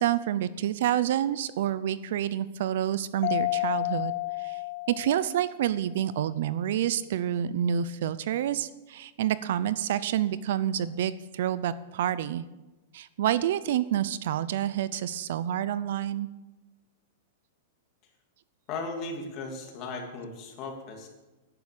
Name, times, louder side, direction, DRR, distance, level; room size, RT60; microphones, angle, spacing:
voice 1, 0.0-4.6 4.9-12.4 12.9-16.3, right 11 dB, 65° right, 16 dB, 0.6 m, -28 dB
Mallet percussion, 3.2-5.7, left 21 dB, 50° left, 0.3 m, -31 dB
voice 2, 18.7-21.1, left 3 dB, 35° left, 2 dB, 2.8 m, -36 dB
11.0 x 10.5 x 6.8 m, 1.1 s
supercardioid pair, 160°, 0 cm